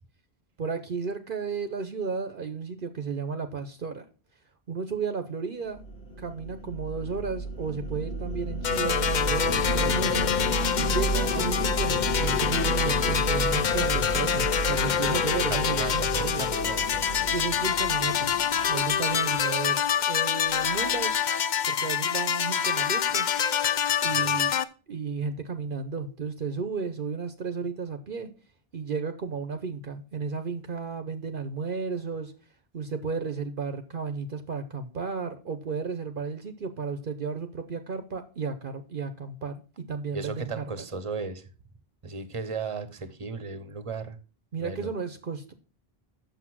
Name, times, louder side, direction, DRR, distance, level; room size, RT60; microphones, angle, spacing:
voice 1, 0.6-4.1 4.7-5.8 6.2-10.3 10.8-16.4 17.3-18.3 18.7-19.8 20.1-21.2 21.7-23.3 24.0-24.5 24.9-28.3 28.7-32.3 32.7-40.9 44.5-45.5, right 5 dB, 60° right, 1.0 m, -33 dB
sound 1, 5.8-19.3, right 1 dB, 75° left, 1.8 m, -32 dB
sound 2, 8.6-24.6, left 8 dB, 55° left, 0.7 m, -26 dB
voice 2, 15.5-17.0 24.0-24.4 40.1-41.4 42.0-44.2 44.6-44.9, right 5 dB, 30° right, 1.0 m, -35 dB
8.1 x 6.8 x 6.0 m
omnidirectional pair, 1.1 m